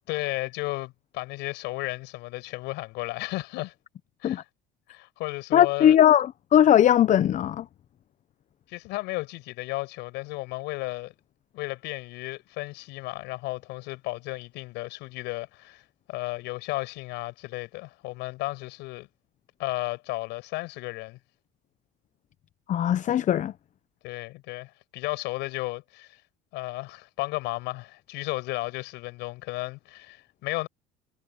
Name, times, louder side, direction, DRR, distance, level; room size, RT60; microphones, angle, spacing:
voice 1, 0.1-3.7 4.2-4.5 4.9-6.0 8.7-11.1 11.5-19.1 19.6-21.2 24.0-26.2 26.5-30.7, left 21 dB, 75° left, 7.4 m, -34 dB
voice 2, 5.5-7.7 22.7-23.5, left 10 dB, 45° left, 0.8 m, -19 dB
supercardioid pair, 90°, 18 cm